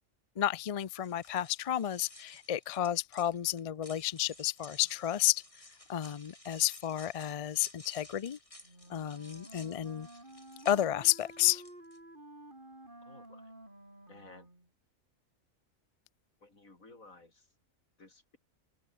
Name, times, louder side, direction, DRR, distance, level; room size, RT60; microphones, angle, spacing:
voice 1, 0.4-5.4 5.9-8.4 8.9-10.1 10.7-11.6, left 12 dB, 50° left, 0.4 m, -31 dB
sound 1, 0.8-12.0, left 1 dB, 25° left, 4.1 m, -55 dB
Wind instrument woodwind instrument, 8.6-14.7, right 1 dB, 40° right, 5.7 m, -52 dB
voice 2, 13.0-13.5 14.1-14.5 16.4-17.5 18.0-18.4, left 2 dB, 90° left, 5.1 m, -55 dB
open air
omnidirectional pair, 1.4 m